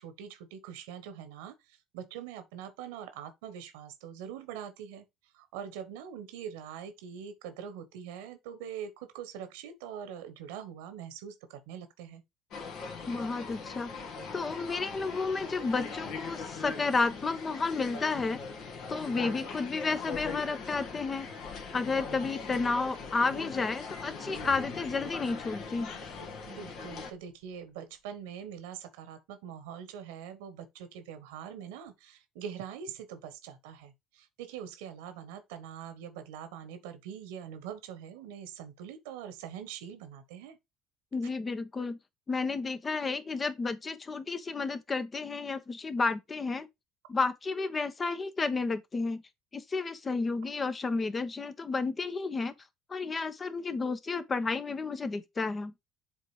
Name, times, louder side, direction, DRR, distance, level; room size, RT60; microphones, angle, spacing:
voice 1, 0.0-12.2 26.4-40.6, right 8 dB, 75° right, 1.3 m, -43 dB
sound 1, 12.5-27.1, left 4 dB, 60° left, 2.1 m, -41 dB
voice 2, 13.1-13.9 14.3-18.4 18.9-21.3 21.7-25.9 41.1-42.0 42.3-46.7 47.1-49.2 49.5-52.5 52.9-55.7, left 4 dB, 30° left, 1.1 m, -31 dB
sound 2, 24.4-27.9 28.4-28.6, left 2 dB, 90° left, 2.7 m, -53 dB
7.5 x 3.7 x 5.0 m
hypercardioid pair, 65°, 0 cm